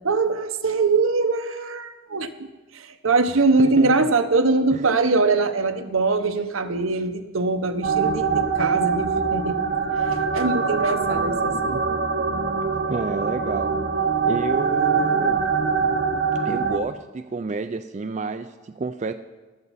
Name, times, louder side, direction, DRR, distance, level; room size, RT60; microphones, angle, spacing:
voice 1, 0.0-2.3 2.7-9.6 10.1-11.8, right 3 dB, 85° right, 8 dB, 0.8 m, -22 dB
voice 2, 3.3-4.1 4.7-4.8 12.8-13.7 14.3-15.5 16.4-19.1, right 3 dB, 35° right, 8 dB, 0.3 m, -30 dB
sound 1, 7.8-16.8, right 5 dB, 50° right, 0.7 m, -23 dB
14.0 x 12.0 x 4.1 m, 1.2 s
head